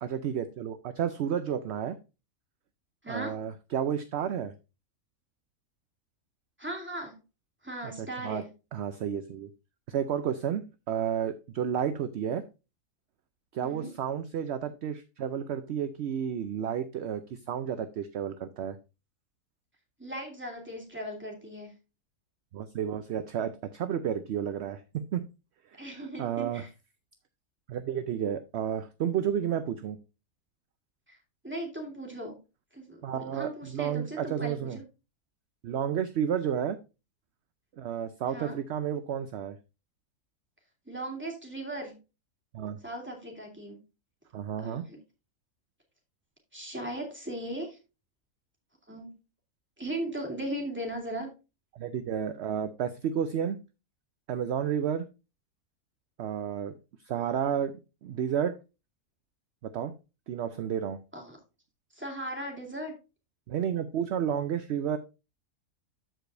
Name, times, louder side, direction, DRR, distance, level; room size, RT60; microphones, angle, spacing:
voice 1, 0.0-2.0 3.1-4.5 7.8-8.4 8.7-9.5 9.9-12.4 13.5-18.8 22.5-25.3 25.7-26.6 27.7-30.0 33.0-34.8 35.6-36.8 37.8-39.6 42.5-42.8 44.3-44.8 51.7-53.6 54.3-55.0 56.2-56.7 57.1-57.7 58.0-58.6 59.6-59.9 60.3-61.0 63.5-65.0, right 8 dB, 60° right, 10 dB, 0.7 m, -31 dB
voice 2, 3.0-3.4 6.6-7.2 7.6-8.5 13.6-14.0 20.0-21.7 25.8-26.7 31.1-31.2 31.4-32.4 32.7-34.8 38.3-38.6 40.9-41.9 42.8-43.8 44.6-45.0 46.5-47.8 48.9-49.1 49.8-51.3 61.1-61.4 61.9-62.9, right 1 dB, 5° right, 0 dB, 2.8 m, -38 dB
13.5 x 5.0 x 2.6 m, 0.28 s
omnidirectional pair, 1.6 m